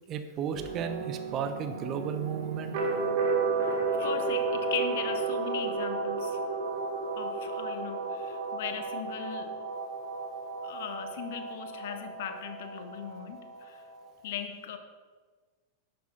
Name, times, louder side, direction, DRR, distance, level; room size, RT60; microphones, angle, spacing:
voice 1, 0.1-2.9, right 7 dB, 35° right, 9 dB, 0.8 m, -34 dB
sound 1, 0.5-14.1, right 4 dB, 50° right, 1.9 m, -33 dB
voice 2, 3.6-6.4 7.2-9.7 10.6-13.8 14.2-14.8, left 8 dB, 55° left, 8 dB, 1.0 m, -39 dB
11.0 x 6.9 x 5.5 m, 1.4 s
figure-of-eight pair, 90°, 0 cm